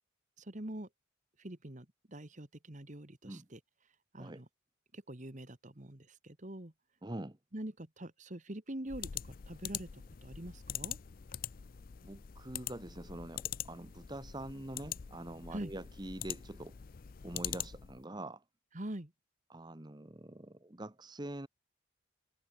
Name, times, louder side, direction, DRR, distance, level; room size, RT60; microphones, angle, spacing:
voice 1, 0.4-0.9 1.4-3.6 4.1-4.5 4.9-6.7 7.5-11.0 15.5-15.7 18.7-19.1, right 1 dB, 35° right, 1.7 m, -44 dB
voice 2, 7.0-7.4 12.0-16.8 17.2-18.4 19.5-21.5, right 1 dB, 20° right, 1.1 m, -45 dB
sound 1, 8.9-18.0, left 10 dB, 45° left, 0.4 m, -43 dB
head